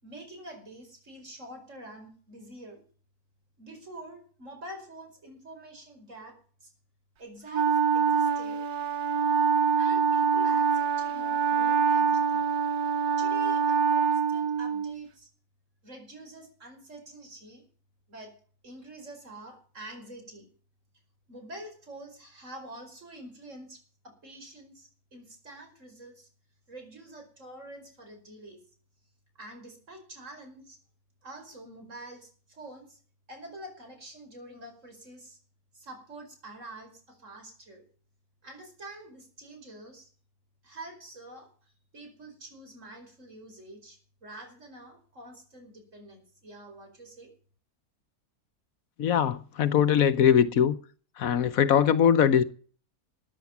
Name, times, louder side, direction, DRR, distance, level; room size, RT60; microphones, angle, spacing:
voice 1, 0.0-2.8 3.6-6.7 7.2-8.6 9.8-12.5 13.2-15.3 15.8-17.6 18.1-18.3 18.6-20.5 21.3-26.3 26.7-28.6 29.4-30.8 31.2-33.0 33.3-35.4 35.7-37.8 38.4-40.1 40.6-41.5 41.9-47.3, right 1 dB, 55° right, 5.4 m, -46 dB
Wind instrument woodwind instrument, 7.5-15.1, right 6 dB, 85° right, 1.5 m, -25 dB
voice 2, 49.0-50.7 51.2-52.4, left 8 dB, 70° left, 1.2 m, -21 dB
14.0 x 10.0 x 7.1 m
omnidirectional pair, 1.6 m